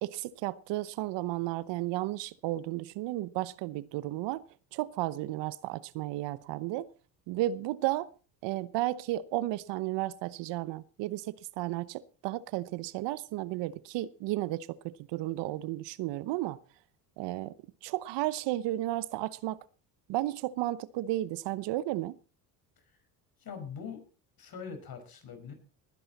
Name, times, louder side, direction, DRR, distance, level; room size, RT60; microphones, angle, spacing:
voice 1, 0.0-4.4 4.7-6.9 7.3-8.1 8.4-16.6 17.2-17.5 17.8-19.6 20.1-22.2, right 16 dB, 65° right, 1.0 m, -33 dB
voice 2, 23.4-24.0 24.4-25.5, left 6 dB, 50° left, 5.5 m, -43 dB
20.0 x 10.0 x 4.2 m
hypercardioid pair, 65°, 45 cm